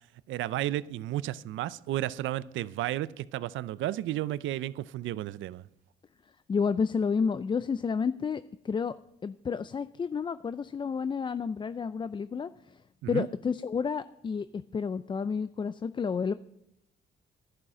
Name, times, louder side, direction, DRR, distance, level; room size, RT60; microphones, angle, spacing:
voice 1, 0.3-5.6 13.0-13.3, right 14 dB, 75° right, 0.5 m, -33 dB
voice 2, 6.5-8.9 9.2-12.5 13.1-16.3, left 5 dB, 25° left, 0.3 m, -30 dB
11.5 x 11.5 x 5.0 m
cardioid pair, 90°, 20 cm